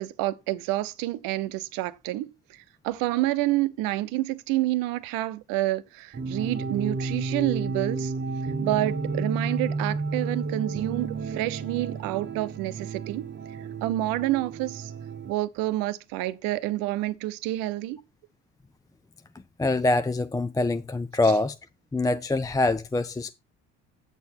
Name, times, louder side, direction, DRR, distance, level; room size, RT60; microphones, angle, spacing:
voice 1, 0.0-8.1 8.6-13.3 13.8-14.9 15.3-18.0 21.2-21.3, right 16 dB, 70° right, 0.8 m, -28 dB
sound 1, 6.1-15.3, right 4 dB, 30° right, 0.9 m, -32 dB
voice 2, 19.6-21.6 21.9-23.3, left 2 dB, 10° left, 0.5 m, -24 dB
8.2 x 6.8 x 4.3 m
hypercardioid pair, 65°, 35 cm